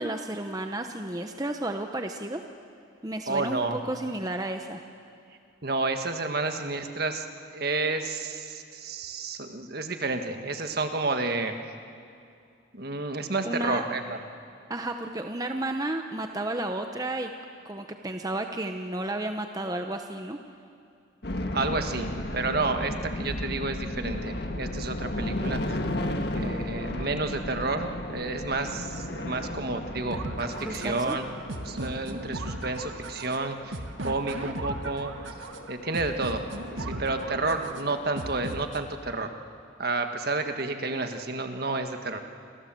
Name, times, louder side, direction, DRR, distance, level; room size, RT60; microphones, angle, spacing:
voice 1, 0.0-2.4 3.0-4.8 13.4-13.8 14.7-17.3 17.6-20.4 30.6-31.2, right 1 dB, 20° right, 5 dB, 0.9 m, -32 dB
voice 2, 3.3-3.8 5.6-7.2 7.5-11.5 12.7-14.2 21.5-25.8 26.3-31.3 31.6-35.3 35.7-36.4 36.8-39.3 39.8-42.2, right 3 dB, 50° right, 6 dB, 1.7 m, -30 dB
sound 1, 21.2-38.5, left 1 dB, 55° left, 1.8 m, -35 dB
sound 2, 30.1-39.1, right 1 dB, 80° right, 1.9 m, -37 dB
28.5 x 25.5 x 7.8 m, 2.4 s
head